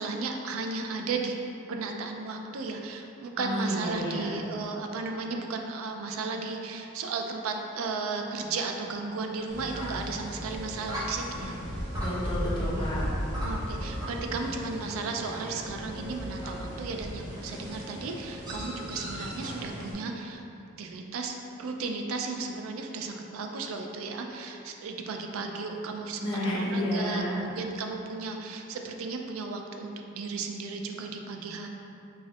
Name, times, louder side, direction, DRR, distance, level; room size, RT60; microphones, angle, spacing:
voice 1, 0.0-1.4 1.7-11.8 13.4-20.4 20.8-31.7, right 4 dB, 70° right, 3 dB, 0.4 m, -35 dB
voice 2, 3.4-4.3 12.0-13.1 26.2-27.4, equal, 25° left, -7 dB, 0.7 m, -30 dB
sound 1, 9.5-19.9, equal, 20° right, 0.7 m, -35 dB
5.3 x 2.7 x 2.3 m, 2.8 s
head